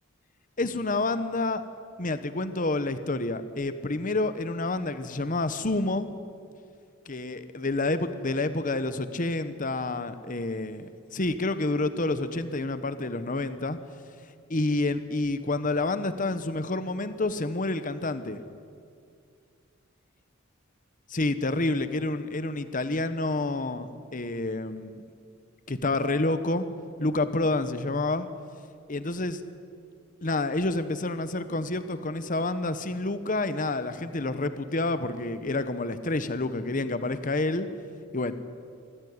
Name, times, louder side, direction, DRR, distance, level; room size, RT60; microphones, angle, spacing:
voice 1, 0.6-1.6 2.0-6.1 7.1-13.8 14.5-18.4 21.1-25.0 25.7-26.7 27.0-28.3 28.9-29.4 30.2-37.7 38.1-38.3, left 2 dB, 40° left, 12 dB, 1.1 m, -28 dB
24.0 x 15.0 x 9.6 m, 2.3 s
head